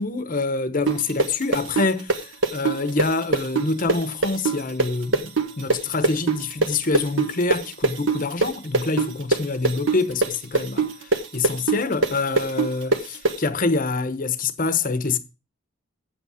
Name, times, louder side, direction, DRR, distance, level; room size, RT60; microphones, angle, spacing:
voice 1, 0.0-10.9 11.3-15.2, left 3 dB, 40° left, 1.0 m, -26 dB
sound 1, 0.9-8.5 8.7-13.3, right 3 dB, 65° right, 1.7 m, -21 dB
8.4 x 8.3 x 4.8 m
head